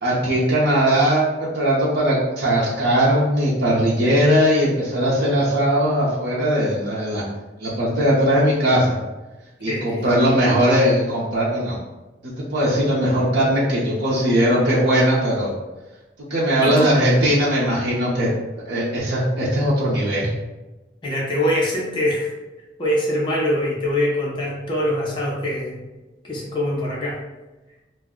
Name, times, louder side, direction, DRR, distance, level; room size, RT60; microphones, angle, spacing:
voice 1, 0.0-7.2 7.6-9.0 9.6-11.8 12.4-15.5 16.3-18.3 18.7-20.3, equal, 70° right, -7 dB, 0.6 m, -19 dB
voice 2, 9.7-10.2 16.6-17.0 20.2-20.3 21.0-22.3 22.8-25.8 26.2-27.2, left 1 dB, 25° left, -4 dB, 0.6 m, -23 dB
2.4 x 2.0 x 3.5 m, 1.1 s
head